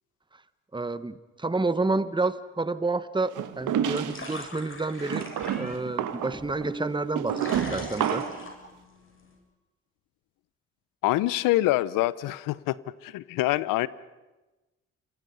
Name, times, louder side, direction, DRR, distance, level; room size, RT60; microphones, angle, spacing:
voice 1, 0.7-5.3 5.6-8.2, right 3 dB, 15° right, 14 dB, 1.3 m, -29 dB
sound 1, 3.3-4.4 5.0-8.5, right 9 dB, 65° right, 1.6 m, -30 dB
sound 2, 3.4-9.4, left 2 dB, 40° left, 7.4 m, -44 dB
sound 3, 3.6-4.4 5.4-5.8 6.3-7.9 8.2-8.7, right 1 dB, ahead, 6.7 m, -40 dB
voice 2, 11.0-12.8 13.0-13.9, left 17 dB, 75° left, 19 dB, 0.8 m, -25 dB
29.0 x 24.0 x 5.6 m, 1.1 s
hypercardioid pair, 45°, 33 cm